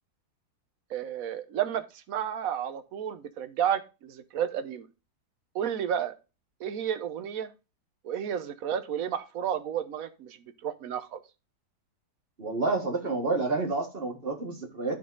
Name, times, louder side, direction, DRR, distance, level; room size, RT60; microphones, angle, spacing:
voice 1, 0.9-4.9 5.5-6.1 6.6-7.5 8.0-10.4 10.6-11.2, right 9 dB, 65° right, 11 dB, 1.2 m, -31 dB
voice 2, 12.4-15.0, right 3 dB, 35° right, 3 dB, 1.7 m, -29 dB
12.0 x 4.0 x 3.9 m, 0.30 s
omnidirectional pair, 1.7 m